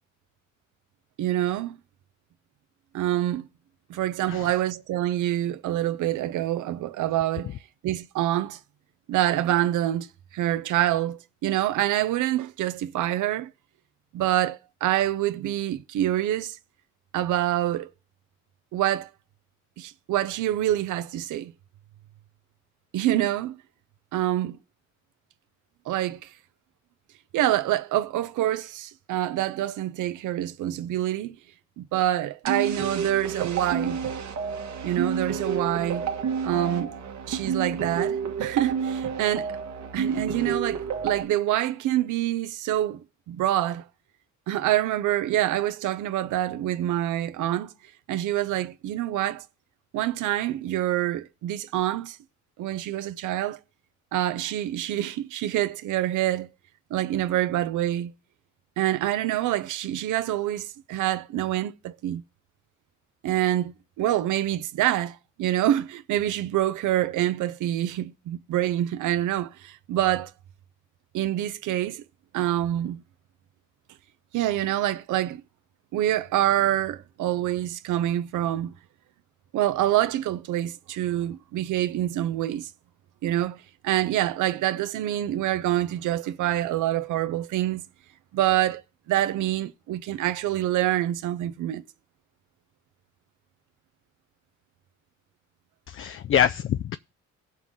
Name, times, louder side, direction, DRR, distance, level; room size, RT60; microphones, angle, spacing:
voice 1, 1.2-1.8 2.9-3.5 3.9-7.5 7.8-8.6 9.1-13.5 14.1-16.6 17.1-17.9 18.7-19.1 19.8-21.5 22.9-23.6 24.1-24.6 25.9-26.3 27.3-31.4 31.8-34.0 34.8-36.1 36.4-36.9 37.3-39.6 39.9-43.9 44.5-47.7 48.1-49.4 49.9-52.2 52.6-53.6 54.1-56.5 56.9-58.1 58.8-62.2 63.2-70.3 71.1-72.0 72.3-73.0 74.3-75.4 75.9-78.7 79.5-82.7 83.2-87.8 88.3-88.8 89.1-91.8, right 13 dB, 80° right, 0.8 m, -26 dB
sound 1, 32.4-41.2, right 6 dB, 65° right, 1.4 m, -29 dB
voice 2, 95.9-97.0, left 9 dB, 45° left, 0.4 m, -25 dB
16.5 x 5.7 x 3.7 m
cardioid pair, 90°, 30 cm